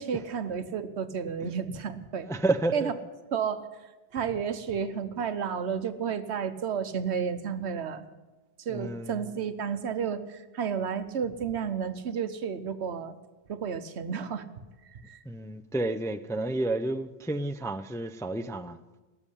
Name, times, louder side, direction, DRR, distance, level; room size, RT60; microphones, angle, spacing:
voice 1, 0.0-2.3 2.7-2.9 3.3-3.7 4.1-8.0 8.6-13.1 13.5-14.4 14.9-15.2, right 7 dB, 85° right, 11 dB, 1.2 m, -32 dB
voice 2, 2.3-2.9 8.7-9.2 15.3-18.8, right 2 dB, 5° left, 8 dB, 0.3 m, -30 dB
18.0 x 7.1 x 10.0 m, 1.2 s
omnidirectional pair, 1.1 m